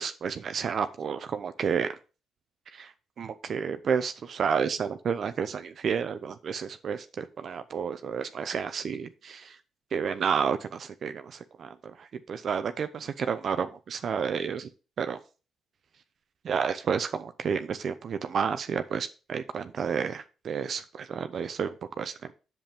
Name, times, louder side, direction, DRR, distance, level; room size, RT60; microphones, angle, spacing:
voice 1, 0.0-1.9 2.7-2.9 3.2-9.6 9.9-14.7 15.0-15.2 16.4-22.3, right 6 dB, 55° right, 9 dB, 0.6 m, -31 dB
8.0 x 7.1 x 3.5 m, 0.33 s
cardioid pair, 90°, 0 cm